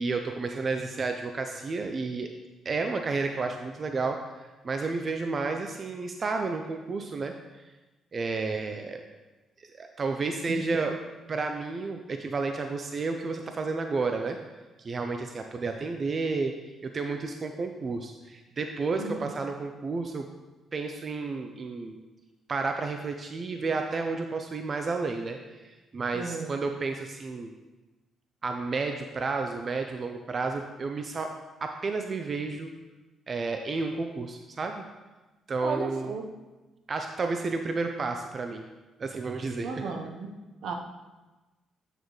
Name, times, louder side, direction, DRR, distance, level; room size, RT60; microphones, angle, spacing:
voice 1, 0.0-2.3 2.6-4.2 4.6-7.3 8.1-9.0 9.6-10.9 11.3-14.4 14.8-16.6 16.8-20.3 20.7-22.0 22.5-27.5 28.4-31.3 31.6-32.7 33.3-34.8 35.5-36.1 36.9-38.7 39.0-39.9, right 4 dB, 40° right, 5 dB, 0.5 m, -31 dB
voice 2, 10.5-11.0 18.9-19.3 26.1-26.6 35.6-36.2 39.6-40.3 40.6-40.7, right 4 dB, 70° right, 3 dB, 0.9 m, -34 dB
8.8 x 6.5 x 3.2 m, 1.2 s
cardioid pair, 90°, 0 cm